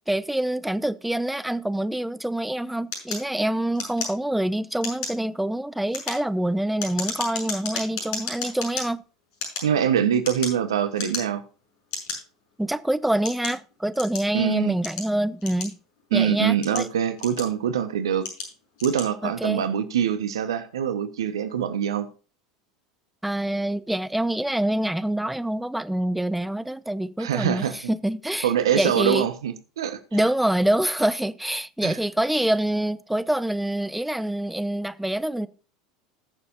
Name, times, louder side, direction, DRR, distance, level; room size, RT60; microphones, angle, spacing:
voice 1, 0.1-9.0 12.6-15.7 16.1-16.9 19.2-19.6 23.2-29.3 30.1-35.5, right 1 dB, 5° right, 0.7 m, -26 dB
sound 1, 2.9-4.5 4.8-5.2 5.8-8.8 9.3-10.6 10.9-11.5 11.9-12.2 12.8-14.3 14.8-16.0 16.5-17.7 18.2-18.5 18.8-19.1, left 4 dB, 65° left, 6.2 m, -33 dB
voice 2, 9.6-11.4 14.3-14.7 16.1-18.3 18.8-22.1 27.2-27.8 28.4-30.2 31.8-32.0, right 9 dB, 80° right, 1.2 m, -24 dB
20.0 x 6.9 x 2.7 m
hypercardioid pair, 85°, 2 cm